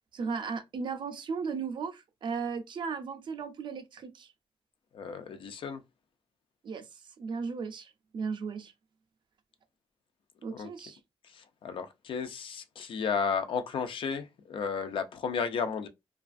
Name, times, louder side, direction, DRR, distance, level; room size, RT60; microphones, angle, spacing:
voice 1, 0.1-4.3 6.6-6.8 7.2-8.7 10.4-11.0, right 5 dB, 50° right, 0.4 m, -36 dB
voice 2, 4.9-5.8 10.5-10.7 11.2-15.9, left 6 dB, 60° left, 0.4 m, -33 dB
2.3 x 2.3 x 2.4 m
wide cardioid pair, 155°, 10 cm